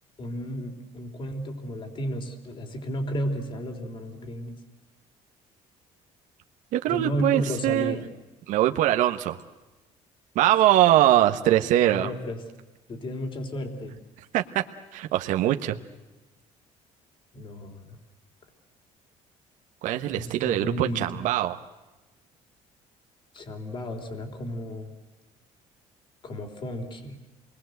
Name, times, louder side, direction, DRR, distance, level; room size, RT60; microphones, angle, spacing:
voice 1, 0.2-4.6 6.9-8.1 11.9-12.4 12.9-14.0 17.3-18.0 20.1-21.2 23.3-24.9 26.2-27.2, equal, 40° left, 6 dB, 3.6 m, -33 dB
voice 2, 6.7-8.0 8.5-9.4 10.3-12.1 14.3-14.6 14.9-15.8 19.8-21.6, right 13 dB, 75° right, 5 dB, 1.2 m, -22 dB
28.5 x 21.0 x 7.9 m, 1.1 s
cardioid pair, 135°, 13 cm